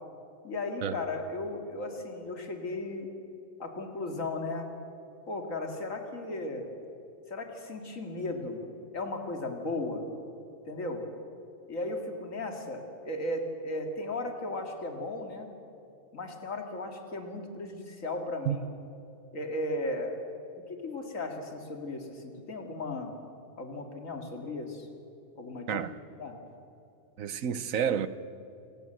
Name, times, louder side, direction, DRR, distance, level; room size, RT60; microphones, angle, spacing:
voice 1, 0.4-3.1 3.6-4.7 5.3-6.6 7.3-8.6 8.9-10.0 10.7-11.1 11.7-15.5 16.1-18.6 19.3-20.2 20.7-23.1 23.6-24.9 25.4-25.8 26.2-26.4, left 2 dB, 75° left, 2.6 m, -36 dB
voice 2, 27.2-28.1, right 8 dB, 85° right, 1.3 m, -29 dB
28.0 x 16.5 x 7.9 m
omnidirectional pair, 1.4 m